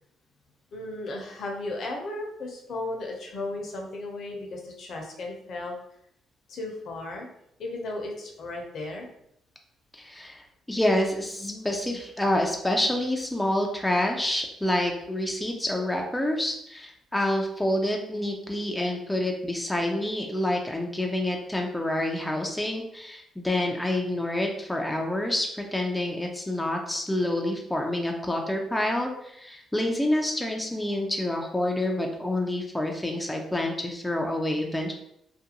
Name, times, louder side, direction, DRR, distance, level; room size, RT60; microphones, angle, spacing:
voice 1, 0.7-5.8 6.5-7.3 7.6-9.1, left 2 dB, 65° left, 1 dB, 0.6 m, -35 dB
voice 2, 9.9-10.4 10.7-34.9, left 1 dB, 10° left, 1 dB, 0.4 m, -28 dB
2.4 x 2.2 x 2.8 m, 0.76 s
cardioid pair, 90°, 0 cm